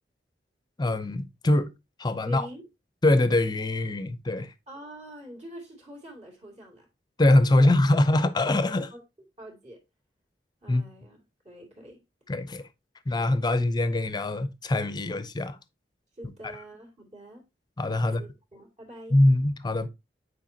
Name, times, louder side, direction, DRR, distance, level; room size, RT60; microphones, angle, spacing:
voice 1, 0.8-1.7 2.0-2.5 3.0-4.5 7.2-8.9 10.7-10.8 12.3-12.6 13.1-15.6 17.8-18.2 19.1-19.9, left 1 dB, 25° left, 0.6 m, -23 dB
voice 2, 2.2-2.7 4.7-6.9 7.6-7.8 8.9-9.0 9.4-9.8 10.6-11.2 11.4-12.0 16.1-17.4 18.0-19.2, right 1 dB, 40° right, 2.6 m, -44 dB
9.0 x 4.6 x 2.8 m
head